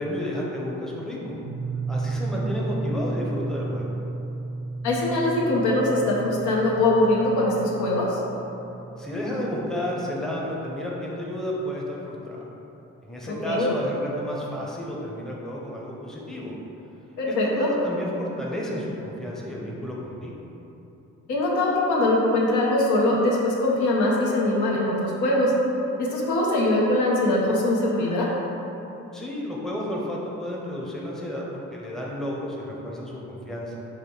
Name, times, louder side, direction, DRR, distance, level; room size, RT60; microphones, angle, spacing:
voice 1, 0.0-1.4 1.9-3.9 9.0-12.4 13.0-16.5 17.3-20.4 29.1-33.8, equal, ahead, -4 dB, 0.7 m, -32 dB
sound 1, 1.4-11.6, right 3 dB, 85° right, 0.6 m, -34 dB
voice 2, 4.8-8.2 13.4-13.7 17.2-17.7 21.3-25.5 26.0-28.3, left 1 dB, 80° left, -3 dB, 0.9 m, -22 dB
4.9 x 2.2 x 4.2 m, 3.0 s
cardioid pair, 90°, 30 cm